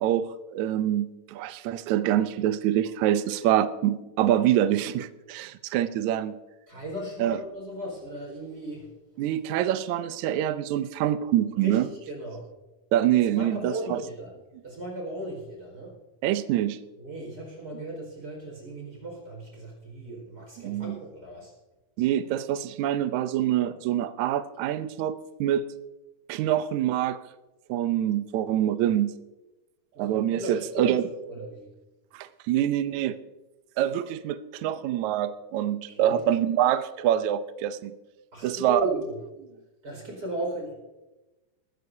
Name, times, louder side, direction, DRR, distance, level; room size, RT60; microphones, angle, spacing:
voice 1, 0.0-6.4 7.2-7.4 9.2-11.9 12.9-14.0 16.2-16.8 20.6-21.0 22.0-25.2 25.4-25.7 26.3-27.2 27.7-29.1 30.0-31.0 32.1-33.2 33.8-37.9 38.4-38.9, right 11 dB, 75° right, 11 dB, 1.8 m, -25 dB
voice 2, 6.7-8.9 11.6-12.5 13.3-14.3 14.6-16.0 17.0-21.5 23.6-23.7 29.9-31.0 31.2-31.7 35.9-36.2 38.3-39.2 39.8-40.7, right 1 dB, 30° right, 0 dB, 5.2 m, -36 dB
21.0 x 14.0 x 2.7 m, 1.1 s
omnidirectional pair, 3.9 m